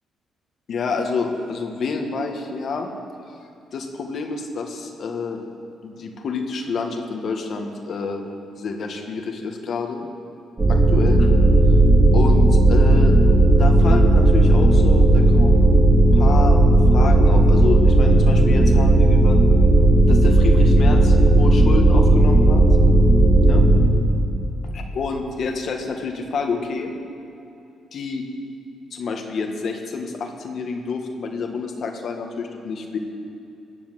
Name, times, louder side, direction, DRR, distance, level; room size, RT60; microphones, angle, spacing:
voice 1, 0.7-2.9 3.7-5.4 5.8-8.2 8.6-10.1 10.7-11.4 12.1-13.1 13.5-15.9 16.1-16.6 16.9-19.4 20.1-22.6 23.4-23.6 24.9-26.9 27.9-28.2 28.9-33.0, left 4 dB, 60° left, 3 dB, 1.7 m, -28 dB
sound 1, 10.6-23.8, right 1 dB, 30° right, 3.0 m, -14 dB
14.5 x 8.7 x 7.6 m, 2.9 s
cardioid pair, 90°, 0 cm